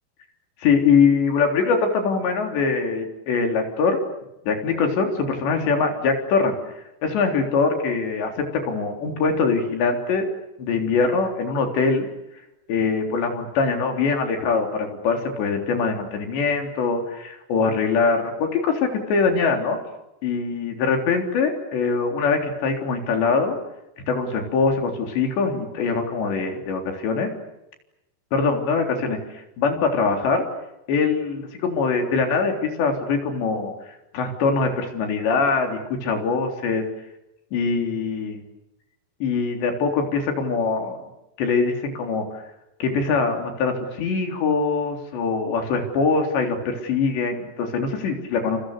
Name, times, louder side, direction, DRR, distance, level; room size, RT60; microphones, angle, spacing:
voice 1, 0.6-4.0 4.4-6.5 7.0-10.3 10.6-12.1 12.7-19.8 20.2-23.6 24.1-27.3 28.3-29.2 29.6-30.5 30.9-33.7 34.1-36.8 37.5-38.4 39.2-41.0 41.4-42.3 42.8-48.6, left 4 dB, 85° left, 3 dB, 5.9 m, -23 dB
29.5 x 28.5 x 6.8 m, 0.92 s
omnidirectional pair, 4.9 m